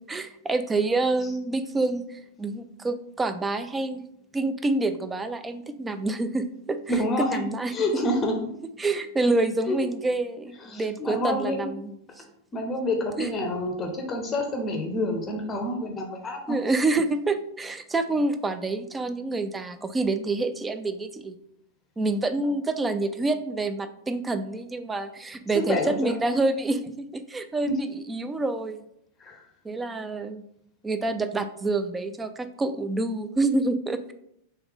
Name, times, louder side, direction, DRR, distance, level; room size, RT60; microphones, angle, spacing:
voice 1, 0.1-4.0 4.3-7.7 8.8-12.2 13.2-13.3 16.5-21.4 22.0-28.9 29.6-30.4 30.8-34.1, right 2 dB, 15° right, 10 dB, 0.3 m, -27 dB
voice 2, 6.9-7.4 7.7-8.3 9.7-9.8 10.6-11.7 12.5-16.4 25.5-26.3 27.7-27.8 29.2-29.4, left 1 dB, 25° left, 3 dB, 0.6 m, -28 dB
3.2 x 3.1 x 3.5 m, 0.75 s
hypercardioid pair, 125°, 0 cm